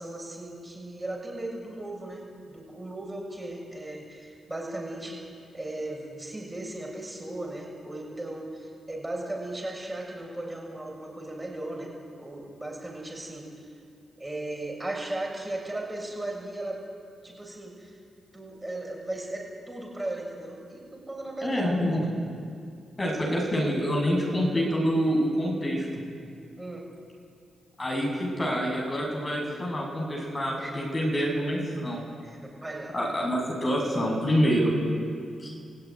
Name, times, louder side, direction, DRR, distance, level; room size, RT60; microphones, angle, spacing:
voice 1, 0.0-5.2 5.5-11.9 12.2-13.7 14.2-16.8 17.2-18.0 18.3-22.1 26.6-26.8 30.6-30.8 31.1-31.2 32.2-33.0, right 1 dB, 15° right, -1 dB, 6.7 m, -37 dB
voice 2, 21.4-22.0 23.0-25.9 27.8-32.1 32.9-34.7 35.4-35.5, equal, 25° left, -1 dB, 7.4 m, -26 dB
27.5 x 16.5 x 9.8 m, 2.4 s
cardioid pair, 90°, 0 cm